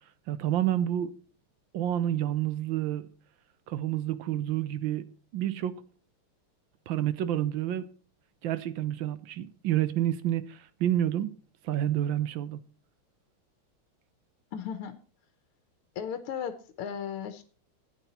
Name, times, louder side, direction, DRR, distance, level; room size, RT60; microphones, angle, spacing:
voice 1, 0.3-1.1 1.7-3.1 3.7-5.1 5.3-5.8 6.9-7.9 8.4-11.4 11.6-12.6, right 12 dB, 70° right, 1.3 m, -29 dB
voice 2, 14.5-14.9 16.0-17.4, left 8 dB, 80° left, 1.8 m, -35 dB
12.0 x 9.3 x 4.3 m
omnidirectional pair, 2.4 m